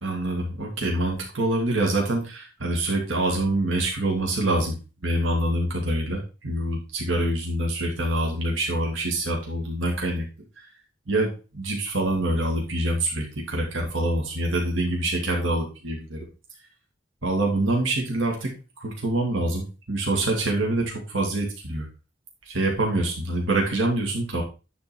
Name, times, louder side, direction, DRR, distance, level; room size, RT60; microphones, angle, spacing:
voice 1, 0.0-4.8 5.0-10.3 11.1-16.2 17.2-18.5 18.8-21.8 22.5-24.4, right 1 dB, 80° right, -1 dB, 2.0 m, -25 dB
10.5 x 3.9 x 4.3 m, 0.31 s
head